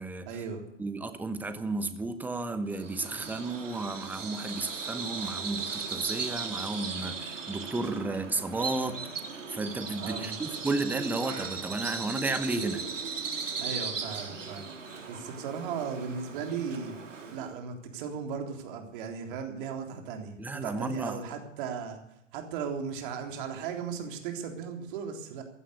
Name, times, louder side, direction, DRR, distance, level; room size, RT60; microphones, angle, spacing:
voice 1, 0.3-0.6 10.0-10.6 13.6-14.7 15.1-17.0 17.3-22.0 22.3-25.4, right 6 dB, 45° right, 4 dB, 3.7 m, -36 dB
voice 2, 0.8-9.0 9.3-12.8 20.4-21.2, right 2 dB, 5° right, 10 dB, 1.0 m, -33 dB
Bird vocalization bird call bird song, 2.7-17.5, right 5 dB, 80° right, 3.7 m, -37 dB
15.5 x 11.0 x 8.3 m, 0.83 s
hypercardioid pair, 130°, 37 cm